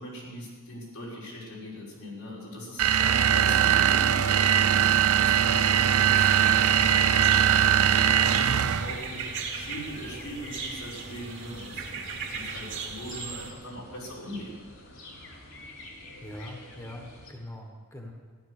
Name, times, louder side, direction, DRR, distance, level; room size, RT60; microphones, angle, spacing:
voice 1, 0.0-9.2 9.5-12.1 12.3-14.5, equal, 90° left, -5 dB, 5.4 m, -40 dB
sound 1, 2.8-9.0, right 9 dB, 85° right, 0.5 m, -21 dB
sound 2, 5.7-13.5, right 5 dB, 60° right, 2.2 m, -37 dB
sound 3, 7.2-17.3, left 2 dB, 65° left, 3.4 m, -48 dB
voice 2, 16.2-18.1, left 1 dB, 15° left, 1 dB, 1.5 m, -42 dB
14.5 x 11.5 x 6.6 m, 1.5 s
head